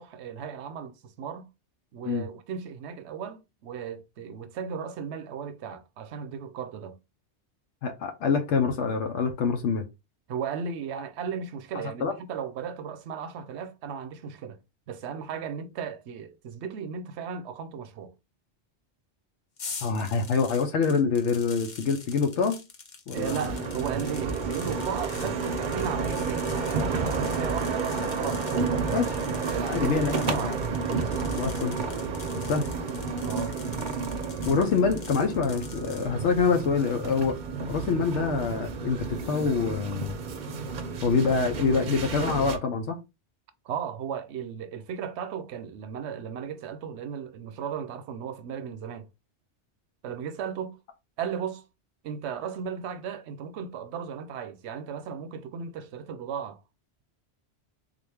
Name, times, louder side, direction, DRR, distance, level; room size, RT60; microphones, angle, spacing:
voice 1, 0.0-1.5 1.9-7.0 10.3-14.6 14.9-18.1 23.1-27.9 28.2-29.1 29.5-30.6 33.2-33.6 43.6-49.1 50.0-50.8 51.2-51.6 52.0-56.6, right 7 dB, 75° right, 0.9 m, -35 dB
voice 2, 7.8-9.8 12.0-12.1 19.8-22.6 23.1-23.5 28.9-29.2 29.7-30.5 31.4-31.8 32.5-32.7 34.5-37.4 37.7-40.2 41.0-43.0, left 5 dB, 80° left, 1.0 m, -26 dB
sound 1, 19.6-36.1, left 4 dB, 45° left, 0.8 m, -45 dB
sound 2, 23.1-42.6, right 4 dB, 50° right, 0.6 m, -31 dB
3.7 x 2.5 x 3.3 m
omnidirectional pair, 1.2 m